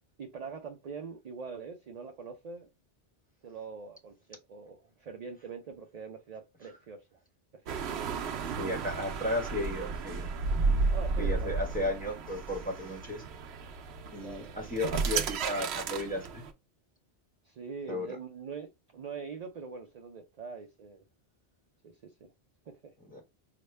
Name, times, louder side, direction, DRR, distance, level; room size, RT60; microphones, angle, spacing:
voice 1, 0.2-2.7 3.4-7.2 7.5-7.8 10.9-11.7 14.1-14.7 17.4-21.0 21.8-22.3 22.7-23.0, right 5 dB, 50° right, 0.5 m, -44 dB
sound 1, 7.7-16.5, right 4 dB, 75° right, 0.9 m, -33 dB
voice 2, 8.6-10.3 11.2-13.2 14.1-16.4 17.9-18.1 23.1-23.2, left 1 dB, 10° left, 1.0 m, -34 dB
4.9 x 2.1 x 3.1 m
omnidirectional pair, 1.1 m